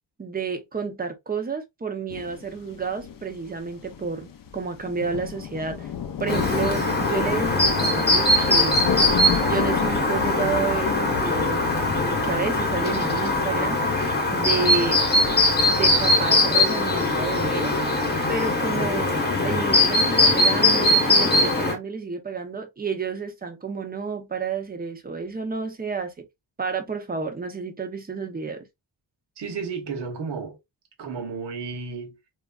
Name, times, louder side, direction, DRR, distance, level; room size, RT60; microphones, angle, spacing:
voice 1, 0.2-5.9 6.2-8.8 9.4-14.0 14.3-15.0 15.7-17.8 18.3-26.1 26.6-28.7, right 5 dB, 20° right, 0.5 m, -30 dB
sound 1, 2.1-21.3, left 8 dB, 50° left, 0.5 m, -34 dB
Chirp tweet, 6.3-21.7, left 2 dB, 25° left, 0.9 m, -21 dB
voice 2, 29.4-30.6 31.0-32.2, right 5 dB, 65° right, 0.9 m, -32 dB
3.1 x 2.4 x 2.3 m
wide cardioid pair, 160°, 44 cm